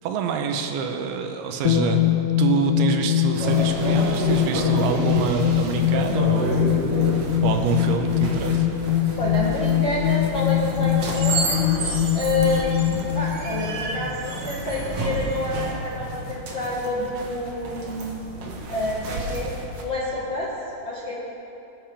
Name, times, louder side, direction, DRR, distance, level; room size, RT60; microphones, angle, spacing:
voice 1, 0.0-2.1 2.4-6.9 7.4-8.7, right 5 dB, 80° right, 5 dB, 2.7 m, -26 dB
sound 1, 1.6-14.5, left 13 dB, 85° left, 2.0 m, -23 dB
sound 2, 3.3-19.8, right 2 dB, 60° right, 1.6 m, -30 dB
voice 2, 9.2-18.2 18.7-20.5 20.8-21.1, left 1 dB, 50° left, -7 dB, 1.4 m, -28 dB
21.5 x 11.5 x 3.4 m, 2.8 s
omnidirectional pair, 4.7 m